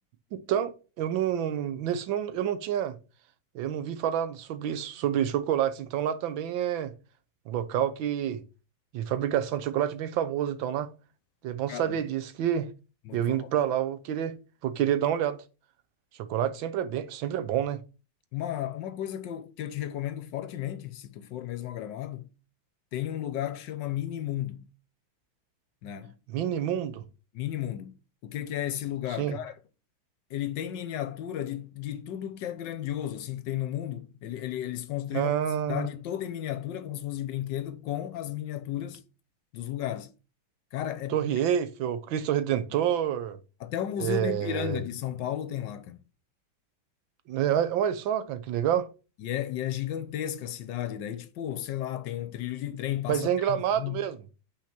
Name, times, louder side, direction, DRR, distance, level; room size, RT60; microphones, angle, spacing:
voice 1, 0.3-3.0 3.5-6.9 7.5-8.4 8.9-10.9 11.4-12.7 13.1-14.3 14.6-15.4 16.2-17.8 26.3-27.0 29.2-29.4 35.1-35.9 41.1-43.4 44.0-44.8 47.3-48.9 53.1-54.2, right 10 dB, 80° right, 1.5 m, -28 dB
voice 2, 11.7-12.0 13.0-13.5 16.4-16.5 18.3-22.3 22.9-24.6 25.8-26.2 27.3-27.9 28.2-29.6 30.3-35.3 35.7-39.0 39.5-40.1 40.7-41.2 43.6-46.0 49.2-54.1, left 11 dB, 70° left, 1.3 m, -34 dB
5.8 x 4.4 x 5.9 m
omnidirectional pair, 2.1 m